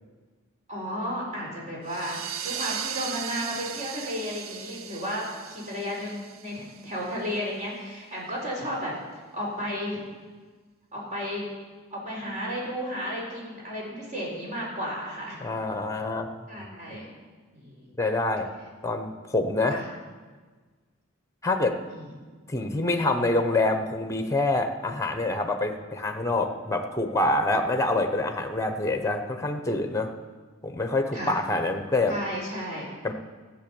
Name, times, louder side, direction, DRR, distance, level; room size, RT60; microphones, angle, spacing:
voice 1, 0.7-2.2 2.4-8.9 9.3-10.0 10.9-11.5 11.9-15.4 16.5-17.1 17.5-17.9 19.7-19.9 21.9-22.1 31.1-31.3 32.1-32.9, equal, 40° right, -3 dB, 4.3 m, -33 dB
sound 1, 1.9-7.2, right 8 dB, 85° right, 0.6 m, -37 dB
voice 2, 15.4-16.3 18.0-18.5 18.8-19.8 21.4-21.8 22.5-30.1 30.6-32.2 33.0-33.1, left 2 dB, 15° left, 6 dB, 1.0 m, -26 dB
15.0 x 7.9 x 7.0 m, 1.4 s
head